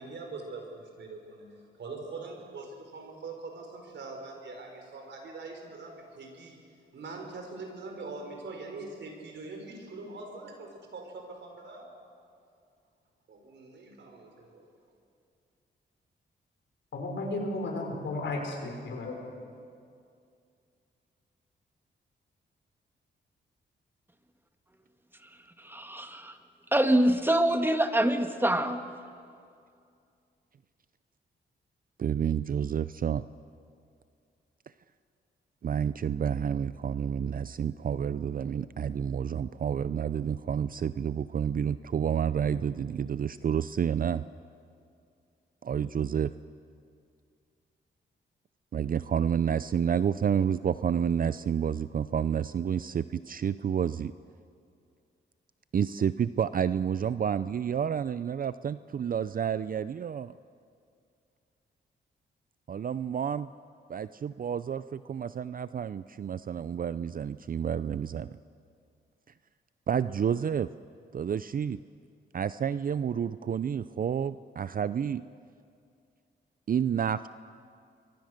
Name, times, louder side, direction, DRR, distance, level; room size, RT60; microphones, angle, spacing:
voice 1, 0.0-1.5 1.8-6.6 6.9-11.9 13.3-14.7, right 3 dB, 70° right, 3 dB, 5.2 m, -43 dB
voice 2, 16.9-19.2, left 2 dB, 75° left, 1 dB, 5.5 m, -34 dB
voice 3, 25.6-26.4 26.7-28.8, right 1 dB, 10° right, 7 dB, 1.7 m, -25 dB
voice 4, 32.0-33.2 35.6-44.2 45.6-46.3 48.7-54.1 55.7-60.3 62.7-63.5 63.9-68.4 69.9-70.7 71.1-71.8 72.3-75.2 76.7-77.3, right 8 dB, 45° right, 14 dB, 0.5 m, -29 dB
26.5 x 23.0 x 6.6 m, 2.4 s
cardioid pair, 75°, 19 cm